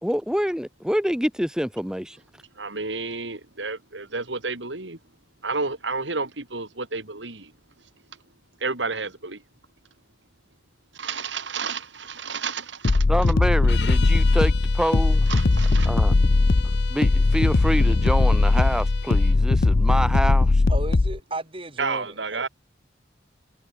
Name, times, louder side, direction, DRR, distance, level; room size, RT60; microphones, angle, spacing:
voice 1, 0.0-2.2 13.1-15.3 15.8-16.1 16.9-20.6, equal, 5° right, 3.0 m, -26 dB
voice 2, 2.6-5.0 5.4-7.5 8.6-9.4 10.9-13.0 15.3-15.9 21.8-22.5, right 4 dB, 85° right, 3.7 m, -31 dB
sound 1, 12.8-21.2, left 3 dB, 55° left, 0.6 m, -19 dB
sound 2, 13.6-19.4, left 7 dB, 70° left, 5.5 m, -39 dB
voice 3, 20.7-22.2, right 2 dB, 30° right, 4.3 m, -34 dB
head